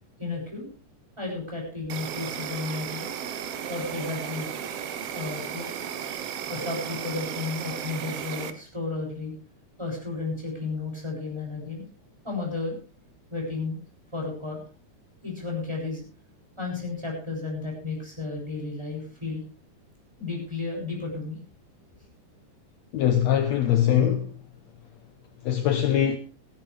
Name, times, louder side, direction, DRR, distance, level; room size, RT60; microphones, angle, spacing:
voice 1, 0.2-0.7 1.2-3.0 3.7-4.5 5.1-5.7 6.5-9.3 9.8-11.8 12.2-12.7 13.3-13.8 14.1-14.6 15.2-16.0 16.6-19.4 20.2-21.4, left 3 dB, 10° right, 7.3 m, -33 dB
Insect, 1.9-8.5, right 9 dB, 60° right, 1.9 m, -34 dB
voice 2, 22.9-24.3 25.5-26.2, left 10 dB, 70° left, 2.0 m, -22 dB
18.0 x 15.5 x 3.4 m
omnidirectional pair, 3.6 m